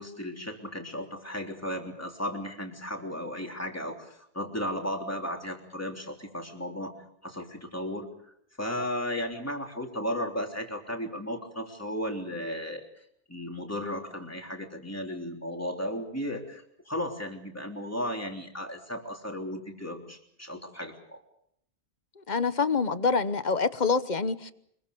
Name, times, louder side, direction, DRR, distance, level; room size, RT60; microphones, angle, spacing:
voice 1, 0.0-7.0 7.2-12.9 13.3-21.2, equal, 10° left, 2 dB, 3.5 m, -35 dB
voice 2, 22.2-24.5, left 4 dB, 40° left, 13 dB, 1.1 m, -26 dB
25.0 x 22.5 x 6.8 m, 0.71 s
omnidirectional pair, 1.2 m